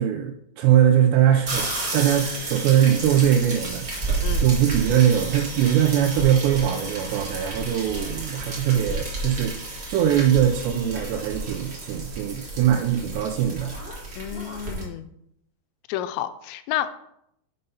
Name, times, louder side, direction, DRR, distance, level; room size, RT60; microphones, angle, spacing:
voice 1, 0.0-9.6 9.9-13.7, right 10 dB, 80° right, 5 dB, 2.8 m, -21 dB
sound 1, 1.4-14.8, right 2 dB, 65° right, 0.9 m, -31 dB
voice 2, 14.2-15.1 15.9-16.9, left 11 dB, 85° left, 11 dB, 2.7 m, -30 dB
6.8 x 5.5 x 5.4 m, 0.75 s
omnidirectional pair, 5.1 m